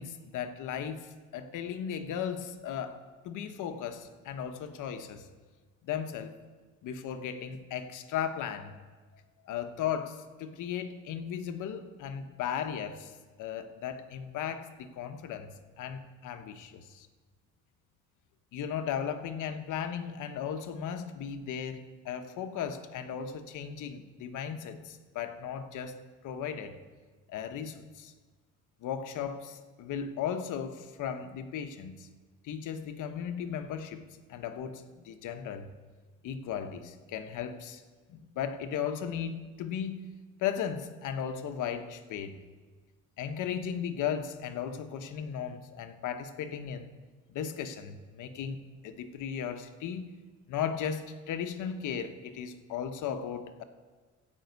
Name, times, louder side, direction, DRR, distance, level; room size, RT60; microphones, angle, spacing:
voice 1, 0.0-3.0 3.2-5.3 5.8-6.3 6.8-8.8 9.4-13.1 13.4-17.1 18.5-26.8 27.3-28.1 28.8-32.1 32.4-34.0 34.3-35.7 36.2-37.8 38.1-40.1 40.4-42.4 43.2-46.9 47.3-48.6 48.8-50.2 50.5-53.6, left 8 dB, 85° left, 8 dB, 1.1 m, -36 dB
16.0 x 5.6 x 8.1 m, 1.4 s
cardioid pair, 90°, 30 cm